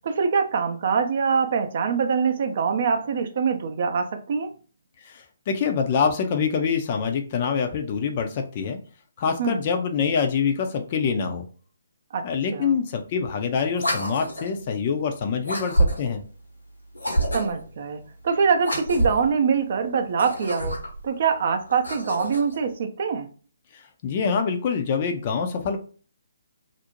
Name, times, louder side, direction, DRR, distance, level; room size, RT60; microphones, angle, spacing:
voice 1, 0.0-4.5 9.4-9.6 12.1-12.3 12.5-12.8 17.3-23.3, right 6 dB, 45° right, 0.4 m, -24 dB
voice 2, 5.0-8.8 9.2-11.4 12.2-16.2 23.7-25.8, left 6 dB, 35° left, 0.4 m, -25 dB
sound 1, 13.7-14.6 15.4-16.2 16.9-17.7 18.6-19.3 20.1-21.0 21.7-22.6, right 1 dB, 80° left, 1.0 m, -27 dB
2.5 x 2.0 x 2.8 m
figure-of-eight pair, 140°, 0 cm